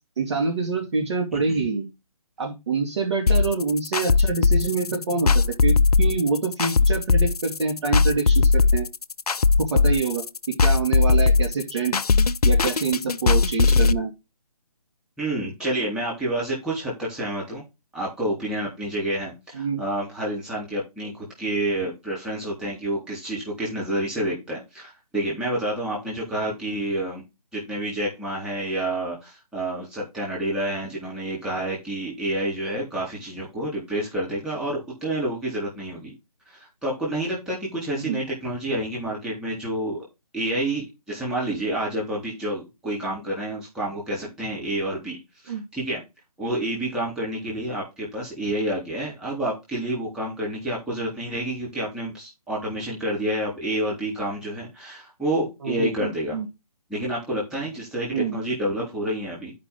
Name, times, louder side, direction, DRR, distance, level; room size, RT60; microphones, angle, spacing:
voice 1, 0.2-1.9 2.4-8.9 9.6-10.2 10.6-12.0 12.4-14.1 19.5-19.8 38.0-38.2 45.5-45.6 55.6-56.5 58.1-58.4, right 4 dB, 50° right, 3 dB, 2.6 m, -26 dB
Hip Hop Beat, 3.3-13.9, left 4 dB, 80° left, 0.6 m, -19 dB
voice 2, 15.2-17.6 17.9-27.2 27.5-36.1 36.5-40.1 40.3-45.2 45.4-46.0 46.4-56.4 56.9-59.5, right 1 dB, 5° right, -5 dB, 3.7 m, -29 dB
11.0 x 5.3 x 3.8 m, 0.24 s
figure-of-eight pair, 150°, 19 cm